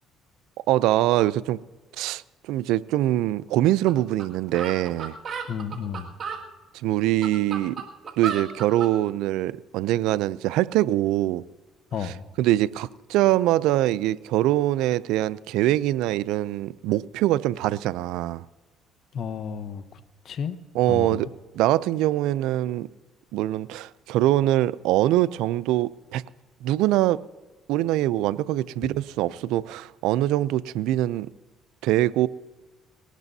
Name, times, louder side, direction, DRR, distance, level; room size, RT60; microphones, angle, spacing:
voice 1, 0.7-1.6 2.0-2.2 2.5-5.1 6.8-7.8 8.2-11.4 12.4-18.4 20.8-21.3 21.6-22.9 23.3-26.2 26.6-27.2 27.7-31.3 31.8-32.3, right 14 dB, 80° right, 0.3 m, -23 dB
sound 1, 3.9-4.0 4.2-4.3 4.5-6.4 7.0-8.9, right 6 dB, 45° right, 2.0 m, -33 dB
voice 2, 5.5-6.1 11.9-12.3 19.1-20.6 20.9-21.2, left 7 dB, 55° left, 0.8 m, -32 dB
20.0 x 18.0 x 2.7 m
cardioid pair, 90°, 0 cm